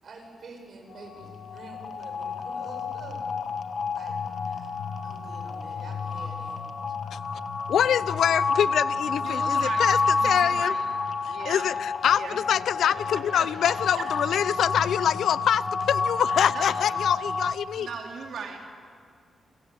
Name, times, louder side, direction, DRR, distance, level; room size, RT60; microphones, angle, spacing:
voice 1, 0.0-3.2 3.9-4.7 5.0-6.6, right 3 dB, 55° right, 2 dB, 7.3 m, -47 dB
sound 1, 0.9-17.5, left 4 dB, 55° left, 1.5 m, -29 dB
voice 2, 7.7-10.7 11.5-17.9, left 9 dB, 90° left, 18 dB, 0.6 m, -25 dB
voice 3, 9.2-10.9 11.3-11.7 12.1-12.4 12.8-14.0 16.5-17.1 17.7-18.6, right 5 dB, 70° right, 1 dB, 3.0 m, -39 dB
29.5 x 22.5 x 8.5 m, 2.3 s
wide cardioid pair, 140°, 0 cm